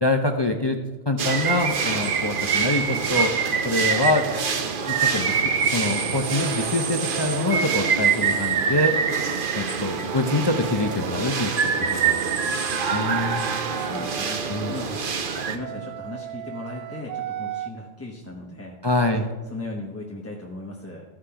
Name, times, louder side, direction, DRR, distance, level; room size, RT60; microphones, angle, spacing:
voice 1, 0.0-0.8 1.1-3.3 3.6-4.3 4.9-8.9 9.6-12.2 12.4-12.5 12.9-13.5 14.5-14.7 18.8-19.3, left 2 dB, 30° left, 5 dB, 0.5 m, -25 dB
sound 1, 1.2-15.6, right 6 dB, 50° right, 0.9 m, -25 dB
sound 2, 9.8-14.9 15.6-17.7, right 11 dB, 75° right, 0.9 m, -36 dB
voice 2, 13.7-14.4 14.7-15.0 15.3-18.8 19.5-21.0, left 2 dB, 15° left, -3 dB, 0.9 m, -37 dB
14.5 x 5.0 x 5.8 m, 1.2 s
omnidirectional pair, 1.3 m